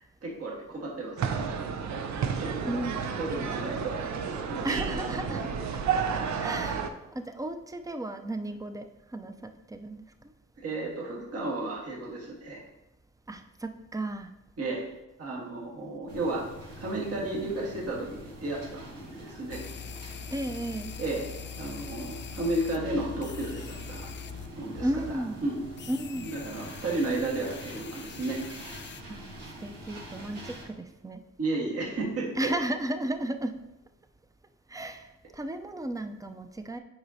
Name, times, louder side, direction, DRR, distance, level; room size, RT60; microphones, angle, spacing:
voice 1, 0.2-1.8 2.4-2.9 3.2-4.0 4.5-5.4 10.6-12.6 14.6-14.9 15.2-16.4 16.8-19.6 20.0-20.1 21.0-21.2 21.6-24.1 24.5-24.9 25.4-25.6 26.2-28.4 31.4-32.5, right 2 dB, 55° right, -3 dB, 1.6 m, -33 dB
sound 1, 1.2-6.9, right 6 dB, 70° right, 0.6 m, -31 dB
voice 2, 2.7-3.0 4.6-5.4 6.1-8.9 9.1-10.1 13.3-14.3 20.3-20.9 24.8-25.4 25.9-26.3 29.1-29.2 29.6-31.2 32.4-33.6 34.7-36.8, right 1 dB, 10° right, 7 dB, 0.5 m, -34 dB
sound 2, 16.1-30.6, right 1 dB, 90° right, 1.7 m, -45 dB
sound 3, 19.5-24.5 24.8-25.1 25.8-29.0, left 7 dB, 40° left, 0.4 m, -43 dB
7.9 x 5.0 x 2.8 m, 0.95 s
cardioid pair, 65°, 29 cm